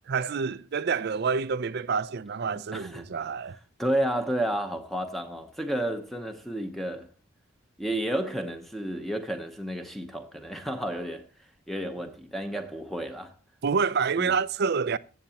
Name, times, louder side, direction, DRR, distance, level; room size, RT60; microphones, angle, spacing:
voice 1, 0.1-3.6 13.6-15.0, right 5 dB, 50° right, 0.4 m, -27 dB
voice 2, 2.7-3.0 3.8-7.1 7.8-11.3 11.7-13.3 14.2-14.3, right 1 dB, ahead, 0.8 m, -31 dB
14.5 x 8.1 x 2.9 m
head